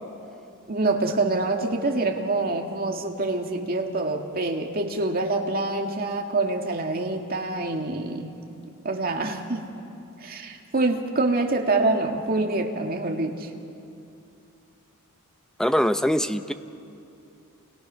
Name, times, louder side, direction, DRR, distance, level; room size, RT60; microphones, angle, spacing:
voice 1, 0.7-8.3 8.8-9.7 10.2-13.5, right 2 dB, 45° right, 2 dB, 2.1 m, -26 dB
voice 2, 15.6-16.5, equal, 5° left, 9 dB, 0.7 m, -22 dB
30.0 x 29.0 x 5.7 m, 2.7 s
head